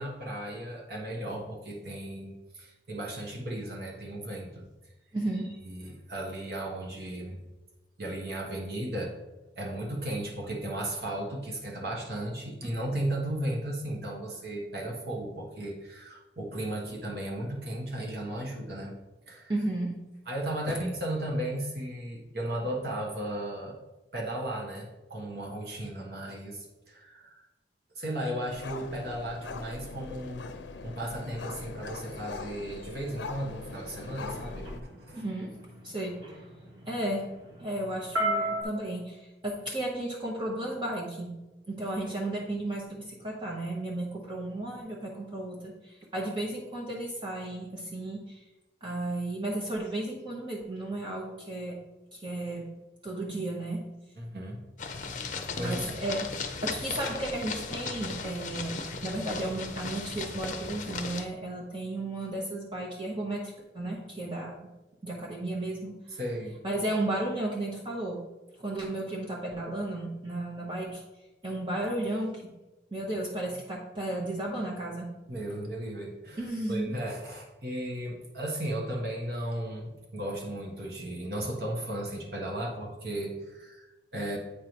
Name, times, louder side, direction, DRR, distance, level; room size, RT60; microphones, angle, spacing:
voice 1, 0.0-4.7 5.6-7.4 8.0-9.1 9.5-18.9 19.3-19.5 20.3-23.8 24.1-27.4 28.0-30.5 30.8-34.7 35.1-35.2 54.2-54.6 55.6-55.9 66.2-66.6 75.3-84.4, right 1 dB, 60° right, -1 dB, 1.3 m, -35 dB
voice 2, 5.1-5.5 19.5-19.9 35.1-35.5 35.8-36.2 36.9-37.3 37.6-41.3 41.7-48.4 48.8-51.8 52.1-52.7 53.0-53.8 55.6-56.3 56.6-64.5 65.0-66.2 66.6-68.2 68.6-71.0 71.4-72.5 72.9-75.1 76.4-77.0, right 1 dB, 25° right, -3 dB, 1.0 m, -34 dB
sound 1, 28.5-34.8, left 3 dB, 85° left, 0.5 m, -41 dB
sound 2, 33.6-38.6, right 1 dB, 85° right, 1.6 m, -35 dB
sound 3, 54.8-61.2, left 4 dB, 45° left, 0.6 m, -36 dB
8.6 x 3.1 x 5.2 m, 1.0 s
head